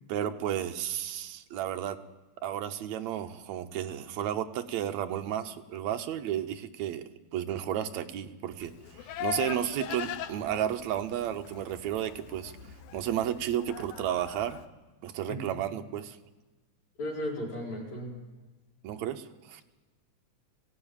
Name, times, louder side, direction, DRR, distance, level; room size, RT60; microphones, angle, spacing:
voice 1, 0.1-2.0 2.4-8.7 9.2-12.5 12.9-14.6 15.0-16.2 18.8-19.6, right 11 dB, 75° right, 7 dB, 2.1 m, -32 dB
Livestock farm animals working animals, 8.6-14.7, left 10 dB, 85° left, 2.4 m, -40 dB
voice 2, 17.0-18.1, equal, 70° left, -3 dB, 6.5 m, -35 dB
20.0 x 16.5 x 8.8 m, 1.2 s
omnidirectional pair, 3.4 m